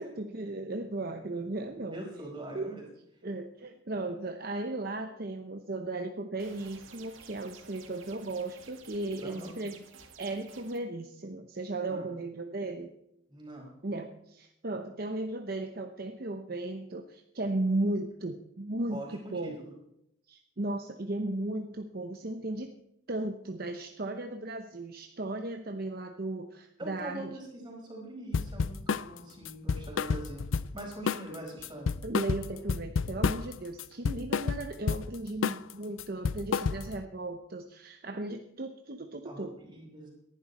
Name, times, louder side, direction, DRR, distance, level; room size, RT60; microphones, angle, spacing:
voice 1, 0.0-2.0 2.5-2.7 3.2-9.8 10.2-12.9 13.8-19.6 20.3-22.7 23.1-27.4 32.0-39.5, right 2 dB, 50° right, 6 dB, 0.8 m, -36 dB
voice 2, 1.9-2.8 9.2-9.5 11.9-12.1 13.3-13.7 18.9-19.7 26.8-31.9 39.2-40.1, right 1 dB, 25° right, -1 dB, 5.1 m, -43 dB
sound 1, 6.4-10.8, right 6 dB, 85° right, 1.8 m, -53 dB
sound 2, 28.3-29.1 29.5-30.8 31.1-31.4 31.6-33.5 33.8-35.1 35.4-35.7 36.0-37.0, left 5 dB, 80° left, 0.5 m, -30 dB
19.0 x 11.5 x 4.2 m, 0.80 s
head